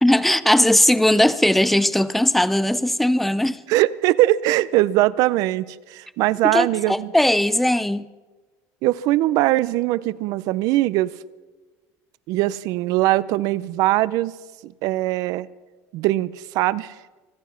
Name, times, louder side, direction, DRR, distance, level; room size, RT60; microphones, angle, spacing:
voice 1, 0.0-3.6 6.5-8.1, left 1 dB, ahead, 16 dB, 0.5 m, -18 dB
voice 2, 3.7-7.1 8.8-11.1 12.3-14.3 14.6-15.5 15.9-16.9, right 16 dB, 60° right, 19 dB, 0.6 m, -21 dB
24.5 x 9.6 x 5.7 m, 1.2 s
cardioid pair, 150°, 7 cm